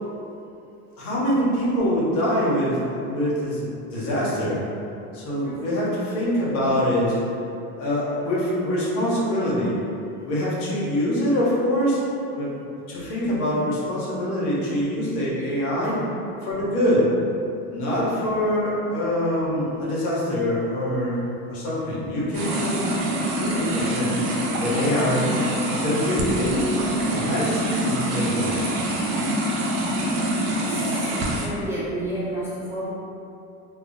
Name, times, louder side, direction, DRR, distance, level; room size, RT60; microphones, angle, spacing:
voice 1, 1.0-4.6 5.1-7.2 7.8-9.7 10.2-12.0 12.4-12.5 12.9-15.9 16.4-17.1 17.7-22.8 23.3-24.2 24.6-25.3 25.7-26.5 27.1-28.7, equal, 70° left, -7 dB, 1.2 m, -24 dB
voice 2, 15.2-16.1 30.4-31.0 31.4-32.9, right 1 dB, 5° right, -10 dB, 0.8 m, -32 dB
sound 1, 22.3-31.5, right 1 dB, 70° right, 0.8 m, -25 dB
2.4 x 2.3 x 3.8 m, 2.7 s
supercardioid pair, 95°, 43 cm